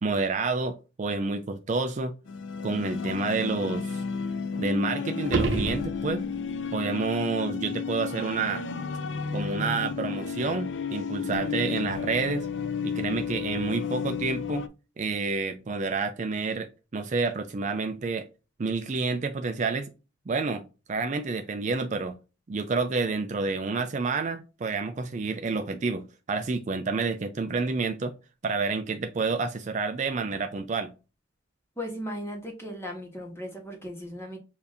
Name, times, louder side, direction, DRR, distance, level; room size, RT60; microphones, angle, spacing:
voice 1, 0.0-2.1 2.6-4.0 4.6-6.3 6.7-8.6 9.3-12.5 12.8-14.7 15.0-18.3 18.6-19.9 20.3-22.2 22.5-28.1 28.4-30.9, right 4 dB, 35° right, 0.4 m, -29 dB
sound 1, 2.3-14.7, left 5 dB, 65° left, 0.4 m, -32 dB
sound 2, 5.2-6.5 11.3-11.4, right 3 dB, 65° right, 0.8 m, -29 dB
voice 2, 31.8-34.4, equal, 15° left, 1.4 m, -37 dB
6.8 x 2.7 x 2.7 m
head